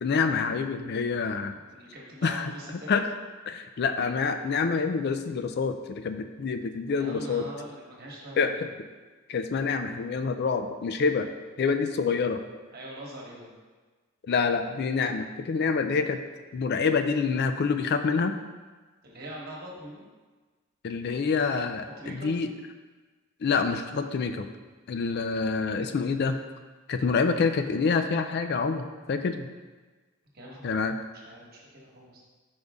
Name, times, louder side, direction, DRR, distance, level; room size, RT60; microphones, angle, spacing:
voice 1, 0.0-1.6 2.2-2.5 2.9-3.0 3.5-7.5 8.4-8.5 9.3-11.3 11.6-12.4 14.3-16.2 16.5-18.4 20.8-22.5 23.4-24.5 24.9-26.4 26.9-29.5 30.6-30.9, left 5 dB, 50° left, 8 dB, 0.4 m, -27 dB
voice 2, 1.5-3.0 6.9-8.7 12.7-13.5 19.0-20.0 22.0-22.3 30.3-30.7 31.2-32.2, right 1 dB, 45° right, -3 dB, 1.2 m, -42 dB
5.2 x 5.2 x 3.5 m, 1.3 s
head